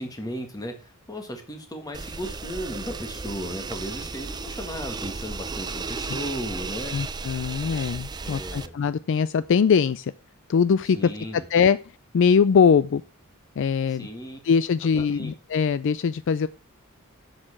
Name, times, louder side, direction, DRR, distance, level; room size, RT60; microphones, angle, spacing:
voice 1, 0.0-7.0 8.2-8.7 10.8-11.4 13.9-14.4 15.0-15.3, equal, 20° left, 5 dB, 1.7 m, -35 dB
sound 1, 1.9-8.7, right 4 dB, 20° right, 0.4 m, -34 dB
voice 2, 6.9-10.1 10.5-11.1 11.5-11.8 12.1-13.0 13.6-14.1 14.4-16.5, left 6 dB, 60° left, 15 dB, 0.4 m, -21 dB
7.7 x 6.6 x 7.3 m, 0.38 s
head